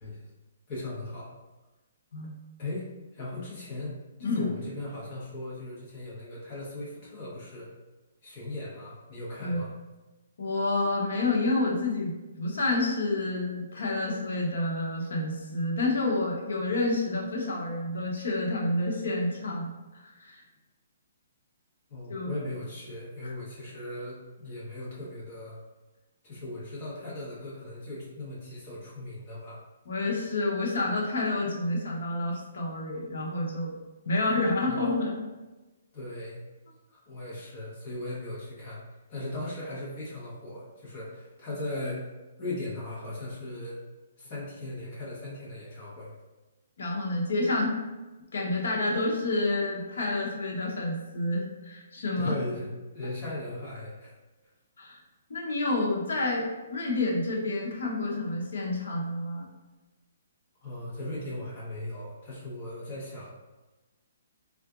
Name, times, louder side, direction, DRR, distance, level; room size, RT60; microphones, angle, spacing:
voice 1, 0.7-1.3 2.6-2.9 3.1-7.7 8.2-9.7 21.9-25.6 26.2-29.6 34.7-34.8 35.9-36.4 36.9-38.8 39.1-42.1 42.4-43.8 44.2-46.1 52.2-54.1 60.6-63.3, left 1 dB, 25° left, -7 dB, 0.9 m, -38 dB
voice 2, 4.2-4.5 9.4-9.6 10.4-20.4 22.1-22.4 23.2-23.3 29.9-33.8 34.1-35.2 46.8-47.8 48.3-52.3 54.8-55.0 55.3-59.5, left 2 dB, 65° left, -2 dB, 0.8 m, -29 dB
3.7 x 2.4 x 2.3 m, 1.1 s
hypercardioid pair, 175°, 0 cm